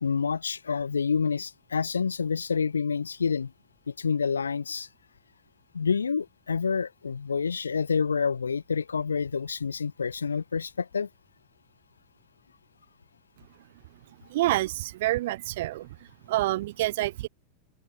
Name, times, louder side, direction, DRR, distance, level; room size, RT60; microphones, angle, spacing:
voice 1, 0.0-3.5 3.9-4.9 5.7-11.1, left 5 dB, 75° left, 1.9 m, -28 dB
voice 2, 14.3-16.0 16.3-17.3, right 17 dB, 55° right, 1.7 m, -27 dB
open air
figure-of-eight pair, 90°, 0 cm